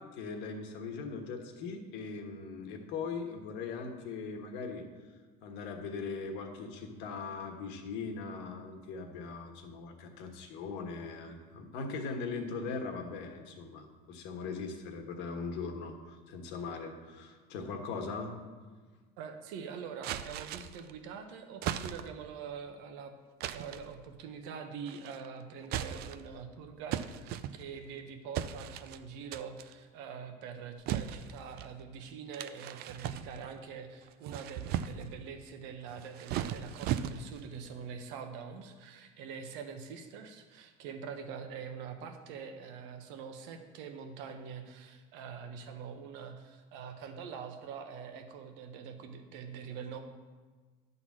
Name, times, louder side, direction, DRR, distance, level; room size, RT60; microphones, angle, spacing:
voice 1, 0.0-4.8 5.4-18.3, left 4 dB, 65° left, 3 dB, 1.4 m, -40 dB
voice 2, 19.2-23.1 23.5-50.0, right 6 dB, 75° right, 6 dB, 1.0 m, -44 dB
sound 1, 20.0-20.9 21.6-22.3 23.4-23.9 24.9-25.3 25.6-26.4 26.9-27.9 28.3-29.0 29.3-29.7 30.9-31.7 32.3-33.6 34.1-35.2 35.9-37.5, right 10 dB, 55° right, 0.4 m, -37 dB
11.0 x 4.1 x 7.3 m, 1.4 s
cardioid pair, 145°, 19 cm